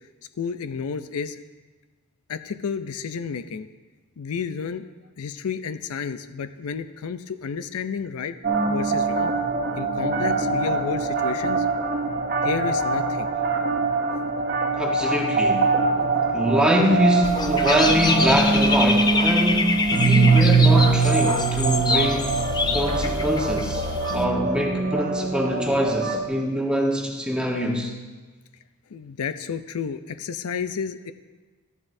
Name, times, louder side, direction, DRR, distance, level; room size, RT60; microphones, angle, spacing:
voice 1, 0.4-1.4 2.3-3.7 4.2-4.9 5.2-8.4 8.7-9.3 9.8-11.7 12.4-13.3 28.9-31.1, left 6 dB, 85° left, 11 dB, 0.5 m, -31 dB
sound 1, 8.4-26.2, right 3 dB, 45° right, 0.9 m, -23 dB
voice 2, 14.8-15.7 16.3-22.3 22.7-23.9 24.1-27.9, equal, 5° right, 0 dB, 1.1 m, -24 dB
Dog / Bird, 17.2-24.2, left 3 dB, 20° left, 0.4 m, -26 dB
13.5 x 11.0 x 2.7 m, 1.3 s
head